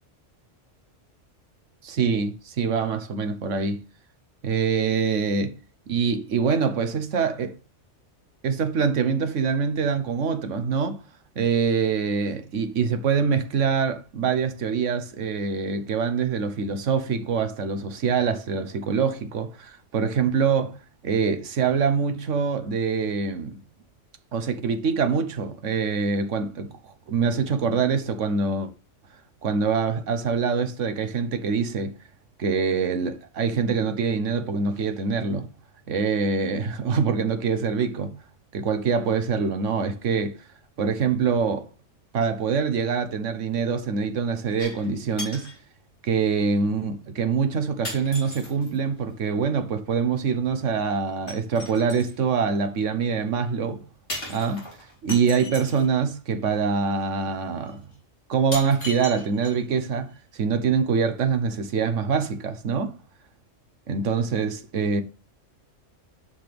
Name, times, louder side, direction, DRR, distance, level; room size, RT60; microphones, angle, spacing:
voice 1, 1.8-3.8 4.4-5.5 5.9-7.6 8.4-11.0 11.3-20.8 21.0-23.6 24.3-28.7 29.4-32.0 32.4-35.5 35.9-38.1 38.5-40.4 40.8-41.7 42.1-45.5 46.0-53.8 54.3-54.7 55.0-57.9 58.3-62.9 63.9-65.0, right 5 dB, 80° right, 1.4 m, -24 dB
sound 1, 44.6-44.9 45.2-45.6 46.6-46.7 47.8-48.8 51.3-52.2 54.1-55.9 57.0-57.1 57.7-57.8 58.5-59.8 60.1-60.2, left 1 dB, 65° left, 3.9 m, -37 dB
10.0 x 6.0 x 3.4 m
omnidirectional pair, 1.3 m